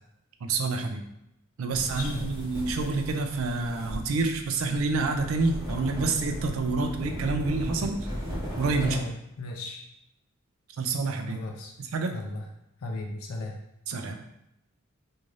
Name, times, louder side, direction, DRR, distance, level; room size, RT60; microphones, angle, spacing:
voice 1, 0.4-1.0 1.6-8.0 8.6-9.0 10.8-11.4 11.9-12.1 13.9-14.2, right 3 dB, 80° right, 6 dB, 0.4 m, -28 dB
voice 2, 1.7-2.3 8.8-9.8 11.3-11.7 12.0-12.5 12.8-13.6, left 2 dB, 85° left, 1 dB, 0.4 m, -36 dB
sound 1, 1.7-9.0, equal, 15° right, 0.8 m, -36 dB
2.6 x 2.4 x 3.1 m, 0.83 s
head